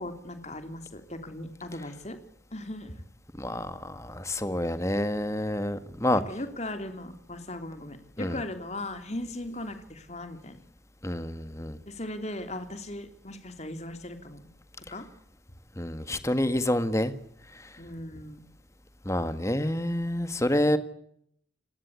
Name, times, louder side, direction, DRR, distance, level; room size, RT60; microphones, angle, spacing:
voice 1, 0.0-2.2 2.5-2.9 6.1-10.6 11.9-14.5 14.9-15.0 17.8-18.5, left 1 dB, 35° left, 8 dB, 3.2 m, -38 dB
voice 2, 3.4-6.2 8.2-8.4 11.0-11.8 15.8-17.1 19.1-20.8, left 1 dB, 15° left, 11 dB, 1.6 m, -28 dB
30.0 x 19.0 x 8.4 m, 0.72 s
head